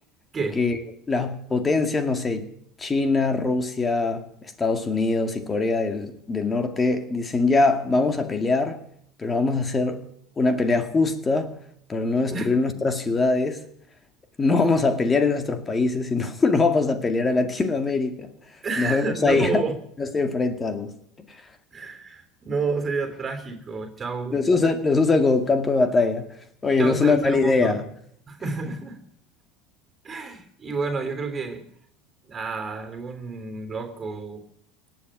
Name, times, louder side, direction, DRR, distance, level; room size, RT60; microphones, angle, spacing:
voice 1, 1.1-2.5 2.8-8.8 9.2-10.1 10.4-11.6 11.9-13.6 14.4-18.3 18.8-19.6 20.0-21.4 24.3-26.3 26.6-27.8, left 3 dB, 25° left, 2.0 m, -22 dB
voice 2, 18.6-19.8 21.7-24.4 26.8-27.8 28.3-29.0 30.0-31.6 32.2-34.4, right 4 dB, 30° right, 3.2 m, -30 dB
18.5 x 7.8 x 9.9 m
hypercardioid pair, 85°, 0 cm